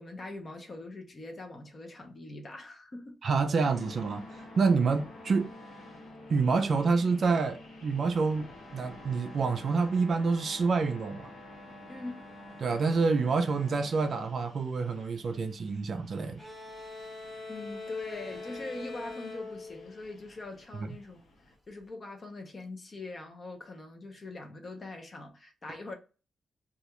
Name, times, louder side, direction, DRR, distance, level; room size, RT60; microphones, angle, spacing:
voice 1, 0.0-3.2 11.9-12.2 17.5-21.2 21.7-25.9, left 2 dB, 30° left, 0.5 m, -42 dB
voice 2, 3.2-4.2 4.6-5.5 6.3-8.5 8.7-11.3 12.6-16.4 20.8-20.9, right 4 dB, 45° right, 0.3 m, -27 dB
sound 1, 3.6-21.5, left 1 dB, 85° left, 0.9 m, -50 dB
sound 2, 16.4-20.8, left 3 dB, 5° left, 0.8 m, -43 dB
2.3 x 2.1 x 2.9 m
wide cardioid pair, 175°, 0 cm